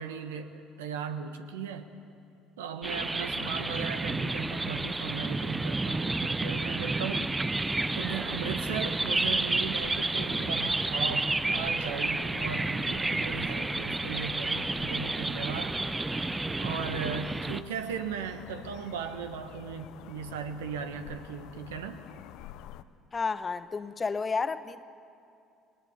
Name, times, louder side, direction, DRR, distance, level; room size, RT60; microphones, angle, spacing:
voice 1, 0.0-1.9 2.6-7.4 7.9-15.8 16.6-22.0, right 7 dB, 80° right, 8 dB, 1.1 m, -37 dB
sound 1, 2.8-17.6, right 2 dB, 15° right, 0.6 m, -30 dB
sound 2, 7.5-22.8, left 12 dB, 65° left, 0.6 m, -48 dB
voice 2, 23.1-24.8, left 4 dB, 30° left, 13 dB, 0.9 m, -31 dB
22.0 x 19.5 x 7.1 m, 2.5 s
hypercardioid pair, 60°, 0 cm